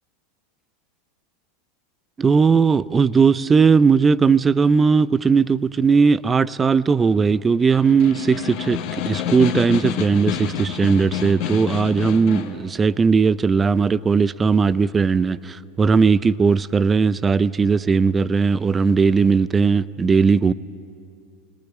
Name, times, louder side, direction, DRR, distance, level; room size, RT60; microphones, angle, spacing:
voice 1, 2.2-8.8 9.1-20.5, right 5 dB, 20° right, 0.6 m, -18 dB
Snare drum, 7.6-12.6, left 9 dB, 55° left, 2.1 m, -28 dB
19.5 x 19.5 x 9.4 m
hypercardioid pair, 85°, 0 cm